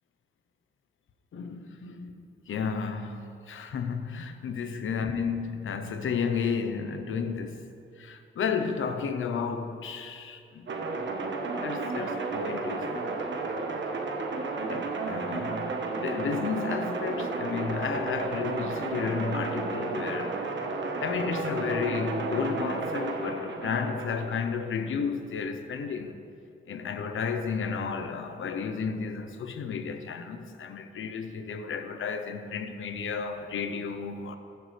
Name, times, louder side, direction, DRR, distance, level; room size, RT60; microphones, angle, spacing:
voice 1, 1.3-7.6 8.0-10.8 11.6-13.9 14.7-15.7 16.0-20.4 21.0-26.2 26.7-34.4, left 6 dB, 75° left, 0.9 m, -32 dB
sound 1, 10.7-24.4, right 3 dB, 65° right, 1.3 m, -32 dB
15.5 x 9.5 x 3.4 m
supercardioid pair, 45°, 21 cm